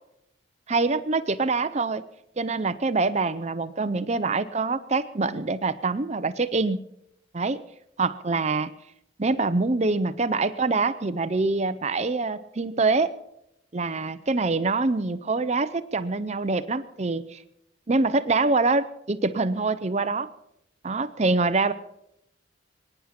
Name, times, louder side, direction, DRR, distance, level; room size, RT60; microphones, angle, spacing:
voice 1, 0.7-2.0 2.4-6.8 7.3-7.6 8.0-8.7 9.2-13.1 13.7-17.4 17.9-20.3 20.8-21.7, right 3 dB, 35° right, 12 dB, 0.6 m, -25 dB
23.5 x 10.0 x 5.8 m, 0.80 s
head